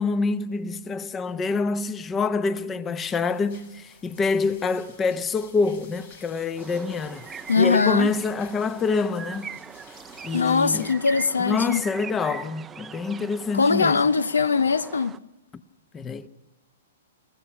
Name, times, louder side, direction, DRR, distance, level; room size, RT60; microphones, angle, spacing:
voice 1, 0.0-7.3 7.6-9.5 10.2-10.9 11.4-14.0 15.9-16.3, left 4 dB, 20° left, 0.9 m, -26 dB
sound 1, 3.0-10.9, left 4 dB, 65° left, 5.1 m, -51 dB
sound 2, 6.6-15.2, right 7 dB, 15° right, 0.6 m, -41 dB
voice 2, 7.5-8.1 10.3-11.8 13.5-15.1, left 5 dB, 85° left, 0.6 m, -21 dB
29.0 x 15.5 x 6.0 m
hypercardioid pair, 115°, 0 cm